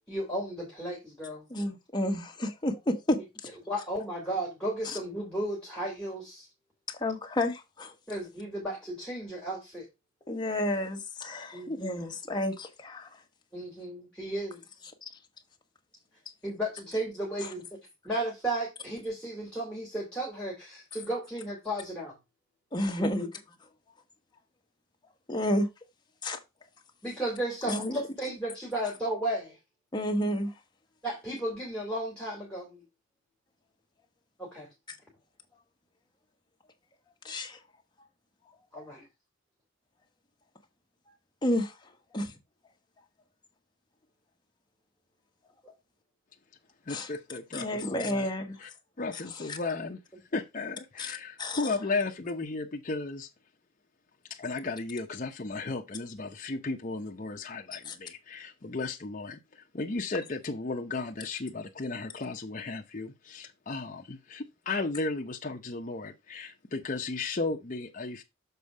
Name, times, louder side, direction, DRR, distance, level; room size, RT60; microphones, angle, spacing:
voice 1, 0.1-1.4 3.7-6.5 8.1-9.9 11.5-11.9 13.5-14.6 16.4-17.6 18.0-22.2 23.0-23.3 27.0-29.6 31.0-32.8 34.4-34.7 38.7-39.0 45.6-45.7, right 1 dB, 5° left, 2.4 m, -34 dB
voice 2, 1.5-3.2 4.8-5.0 6.9-7.9 10.3-13.2 17.4-17.5 22.7-23.2 25.3-25.7 26.2-26.4 27.7-28.0 29.9-30.5 34.9-35.0 37.2-37.6 41.4-42.3 46.9-47.1 47.5-48.6 49.4-49.6 51.0-51.7 57.7-58.0, left 1 dB, 20° left, 1.2 m, -31 dB
voice 3, 46.9-48.3 48.6-48.7 49.0-50.0 50.3-53.3 54.3-68.2, left 3 dB, 40° left, 0.7 m, -35 dB
6.9 x 4.3 x 4.8 m
head